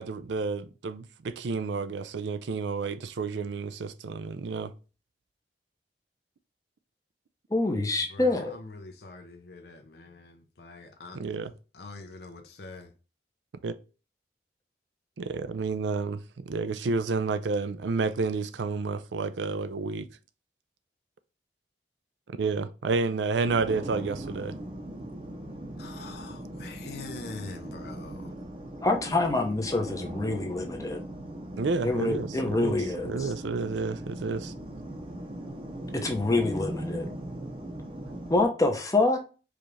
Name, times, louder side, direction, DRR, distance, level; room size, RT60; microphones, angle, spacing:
voice 1, 0.0-4.7 11.1-11.5 13.6-13.8 15.2-20.1 22.3-24.6 31.6-32.8 33.0-34.5, right 4 dB, 80° right, 0.4 m, -30 dB
voice 2, 7.5-8.5 28.8-31.0 31.8-33.3 35.9-37.1 38.3-39.2, left 2 dB, 20° left, 0.7 m, -26 dB
voice 3, 8.1-11.2 11.7-12.9 25.8-28.3, left 3 dB, 60° left, 0.6 m, -44 dB
sound 1, 23.4-38.4, right 1 dB, 30° right, 0.7 m, -39 dB
4.9 x 2.5 x 3.1 m
head